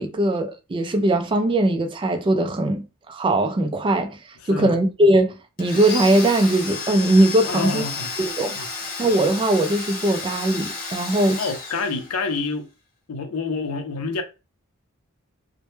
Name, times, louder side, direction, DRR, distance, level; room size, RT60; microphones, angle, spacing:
voice 1, 0.0-4.2 4.5-7.8 8.2-8.6 9.0-11.4, right 1 dB, 25° right, 0.3 m, -20 dB
Domestic sounds home sounds, 5.6-12.4, left 4 dB, 40° left, 0.8 m, -32 dB
voice 2, 7.5-8.1 8.6-8.7 11.4-12.7 13.1-14.2, left 4 dB, 80° left, 0.5 m, -27 dB
2.1 x 2.1 x 3.0 m
head